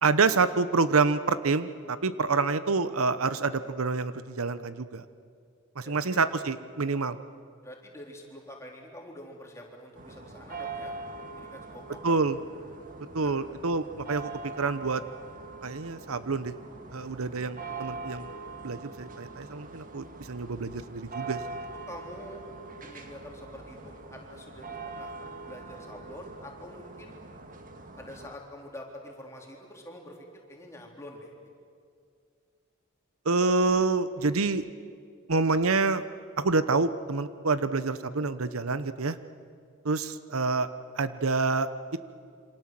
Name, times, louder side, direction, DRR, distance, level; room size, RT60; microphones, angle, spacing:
voice 1, 0.0-5.0 5.8-7.2 12.0-12.4 13.1-14.3 14.6-15.0 15.6-16.5 16.9-18.3 18.6-21.6 33.2-34.6 35.3-36.0 36.4-39.2 39.8-40.7 41.0-41.7, right 4 dB, 85° right, 13 dB, 0.9 m, -27 dB
voice 2, 5.8-6.2 7.6-10.9 11.4-12.2 13.2-13.3 21.8-22.4 22.8-27.2 28.0-31.3, left 1 dB, 15° left, 0 dB, 3.7 m, -46 dB
sound 1, 10.0-28.3, right 3 dB, 40° right, 1.9 m, -43 dB
27.5 x 25.5 x 7.6 m, 2.3 s
head